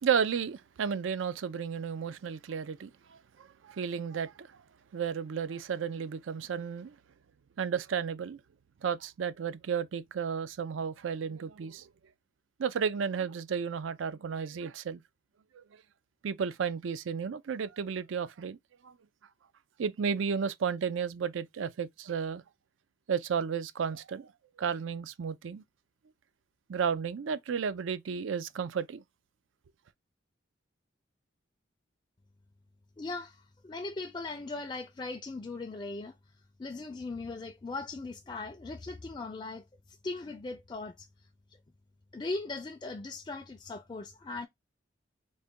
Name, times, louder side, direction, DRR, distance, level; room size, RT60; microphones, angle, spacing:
voice 1, 0.0-4.6 4.9-7.0 7.6-8.4 8.8-11.9 12.6-15.0 15.5-15.6 16.2-18.6 18.8-18.9 19.8-22.4 23.1-24.3 24.6-25.6 26.7-29.0, right 6 dB, 85° right, 0.4 m, -33 dB
voice 2, 33.0-36.2 36.6-41.1 42.1-44.5, left 3 dB, 25° left, 0.3 m, -39 dB
3.9 x 2.2 x 3.6 m
head